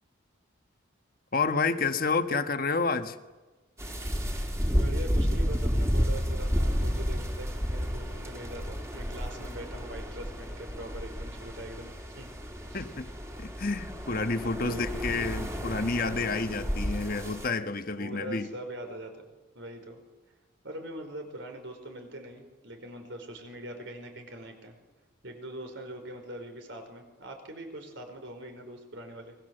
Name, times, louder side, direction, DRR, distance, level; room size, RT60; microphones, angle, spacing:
voice 1, 1.3-3.2 12.7-13.1 13.4-18.5, left 3 dB, 45° left, 8 dB, 1.4 m, -29 dB
sound 1, 3.8-17.5, equal, 15° right, 3.4 m, -31 dB
voice 2, 4.7-12.3 12.7-12.8 14.6-15.1 18.0-19.1 19.5-20.0 20.6-24.7 25.2-29.3, right 1 dB, 60° right, 5 dB, 5.1 m, -42 dB
29.5 x 22.0 x 7.8 m, 1.2 s
head